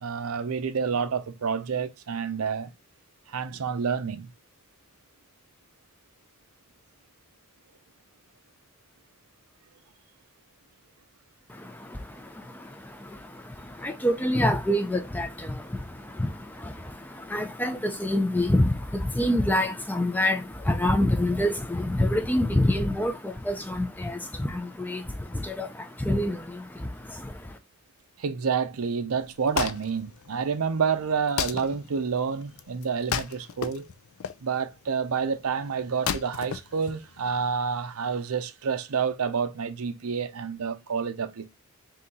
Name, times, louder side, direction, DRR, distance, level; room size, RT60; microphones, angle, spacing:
voice 1, 0.0-2.7 3.3-4.3 28.2-33.9 34.4-41.5, right 6 dB, 85° right, 0.6 m, -29 dB
voice 2, 11.5-27.6, left 1 dB, 10° left, 0.4 m, -27 dB
Wood, 29.1-37.5, left 7 dB, 75° left, 0.4 m, -35 dB
3.7 x 2.8 x 4.0 m
head